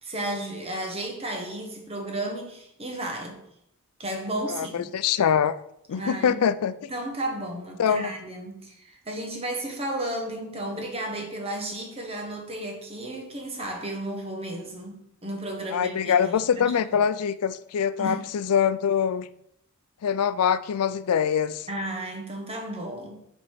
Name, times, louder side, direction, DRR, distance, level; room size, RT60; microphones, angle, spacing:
voice 1, 0.0-3.4 4.0-4.9 5.9-6.4 6.9-16.8 18.0-18.2 21.7-23.2, right 1 dB, 25° right, 1.4 m, -33 dB
voice 2, 4.5-5.5 5.9-6.7 7.8-8.1 15.7-19.3 20.0-21.7, left 7 dB, 90° left, 0.4 m, -24 dB
7.1 x 4.4 x 4.8 m
head